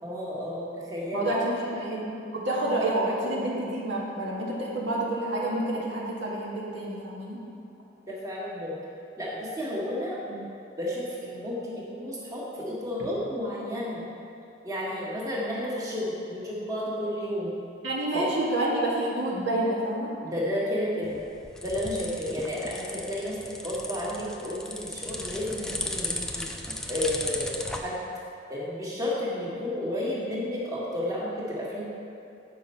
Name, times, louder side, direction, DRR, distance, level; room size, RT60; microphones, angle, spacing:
voice 1, 0.0-1.3 8.1-8.7 9.2-10.4 10.8-14.1 14.6-17.5 18.1-18.2 20.2-21.2 21.6-23.3 23.6-26.4 26.9-28.0 28.5-31.9, left 1 dB, 20° right, -7 dB, 1.6 m, -32 dB
voice 2, 1.1-2.0 2.3-7.4 17.8-20.1, right 1 dB, 90° right, -5 dB, 1.9 m, -28 dB
sound 1, 21.0-27.8, left 1 dB, 5° left, 0.5 m, -36 dB
9.0 x 5.4 x 5.6 m, 2.6 s
head